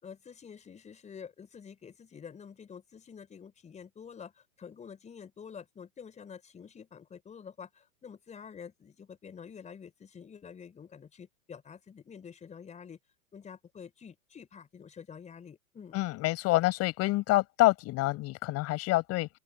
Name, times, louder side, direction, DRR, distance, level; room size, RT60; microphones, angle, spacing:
voice 1, 0.0-13.0 13.3-16.0, left 7 dB, 15° left, 4.8 m, -48 dB
voice 2, 15.9-19.3, left 19 dB, 35° left, 6.0 m, -27 dB
open air
figure-of-eight pair, 110°, 44 cm